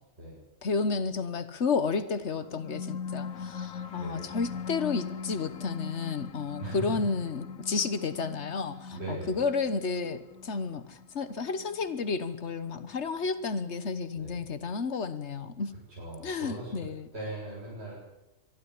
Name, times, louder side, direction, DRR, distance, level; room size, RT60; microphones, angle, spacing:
voice 1, 0.6-15.7 16.2-17.1, left 4 dB, 55° left, 12 dB, 1.5 m, -31 dB
sound 1, 2.3-13.3, left 6 dB, 80° left, 1.4 m, -41 dB
voice 2, 8.9-9.4 14.2-14.4 16.0-16.7 17.1-18.0, right 2 dB, 50° right, -7 dB, 7.7 m, -39 dB
23.0 x 13.0 x 9.9 m, 0.98 s
omnidirectional pair, 1.4 m